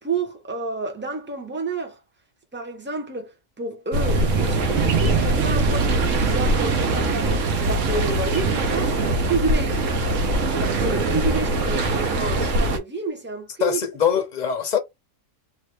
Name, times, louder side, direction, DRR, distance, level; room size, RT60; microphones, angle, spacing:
voice 1, 0.0-2.0 2.5-9.8 10.6-13.8, right 3 dB, 10° right, 0.7 m, -29 dB
sound 1, 3.9-12.8, right 2 dB, 75° right, 1.1 m, -22 dB
sound 2, 4.8-10.8, right 7 dB, 50° right, 0.6 m, -31 dB
voice 2, 13.6-14.8, left 8 dB, 45° left, 0.6 m, -22 dB
2.8 x 2.7 x 3.1 m
omnidirectional pair, 1.3 m